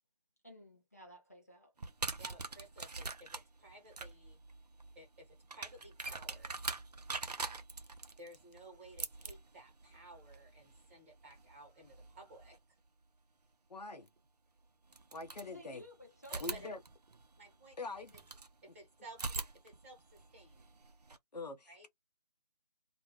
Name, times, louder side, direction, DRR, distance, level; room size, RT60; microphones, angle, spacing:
voice 1, 0.4-1.7 15.4-16.7, left 1 dB, 25° left, 0.4 m, -55 dB
sound 1, 1.8-12.6 14.1-14.2 14.9-15.9 16.2-18.5 19.1-21.2, right 3 dB, 70° right, 0.6 m, -44 dB
voice 2, 2.2-4.4 4.9-6.7 8.2-12.6 16.3-16.7 17.4-17.7 18.6-20.7 21.7-21.9, right 2 dB, 20° right, 1.2 m, -56 dB
voice 3, 13.7-14.1 15.1-15.8 16.4-16.8 17.8-18.1 21.3-21.9, left 3 dB, 75° left, 0.6 m, -43 dB
2.4 x 2.1 x 2.8 m
figure-of-eight pair, 155°, 21 cm